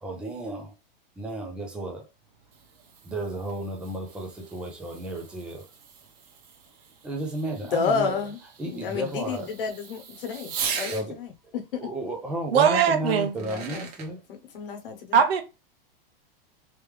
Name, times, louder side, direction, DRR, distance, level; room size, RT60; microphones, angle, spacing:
voice 1, 0.0-0.7 1.2-2.1 3.0-5.6 7.0-8.2 8.6-9.5 10.9-11.2 11.8-14.2, right 1 dB, 5° right, 0.5 m, -33 dB
Fireworks, 2.2-11.1 12.6-12.7 13.2-14.1, right 6 dB, 35° right, 1.0 m, -40 dB
voice 2, 7.5-8.4 8.6-11.8 13.4-13.9 14.3-15.2, left 5 dB, 65° left, 1.0 m, -31 dB
voice 3, 12.5-13.3 15.1-15.4, right 7 dB, 80° right, 1.0 m, -20 dB
3.4 x 3.2 x 3.2 m
supercardioid pair, 175°, 29 cm